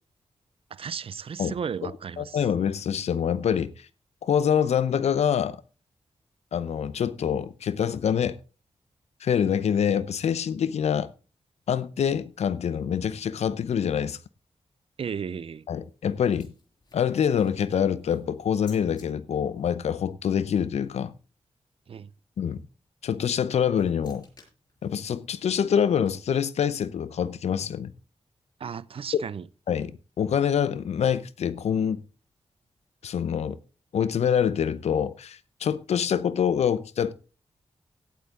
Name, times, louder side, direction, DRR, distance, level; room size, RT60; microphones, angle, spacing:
voice 1, 0.7-2.4 15.0-15.6 21.9-22.1 28.6-29.5, right 7 dB, 60° right, 0.5 m, -34 dB
voice 2, 2.2-3.9 4.2-5.6 6.5-8.4 9.2-11.1 11.7-14.2 15.7-16.5 16.9-21.1 22.4-22.6 23.0-24.3 24.8-27.9 29.1-29.2 29.7-32.0 33.0-33.6 33.9-37.1, left 8 dB, 90° left, 0.7 m, -25 dB
sound 1, 15.5-19.1 23.2-26.6, left 3 dB, 40° left, 6.6 m, -58 dB
16.0 x 8.2 x 3.7 m
wide cardioid pair, 90°, 11 cm